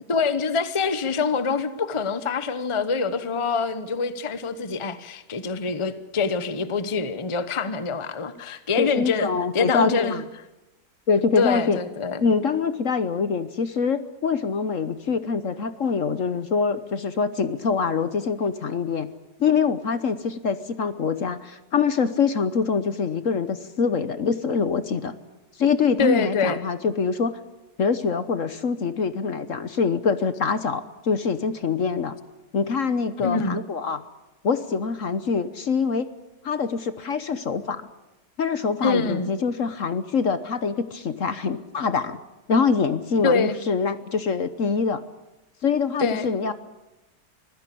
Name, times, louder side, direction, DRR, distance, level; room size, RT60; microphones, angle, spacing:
voice 1, 0.1-9.3 9.5-10.2 11.4-12.2 26.0-26.6 33.2-33.6 38.8-39.3 43.2-43.6 46.0-46.3, left 4 dB, 20° left, 0.9 m, -25 dB
voice 2, 8.8-10.2 11.1-11.8 12.2-19.1 19.4-25.1 25.6-27.4 27.8-32.1 32.5-34.0 34.4-36.1 36.4-37.9 38.4-42.2 42.5-45.0 45.6-46.5, left 5 dB, 50° left, 1.3 m, -24 dB
25.0 x 16.5 x 8.5 m
omnidirectional pair, 1.8 m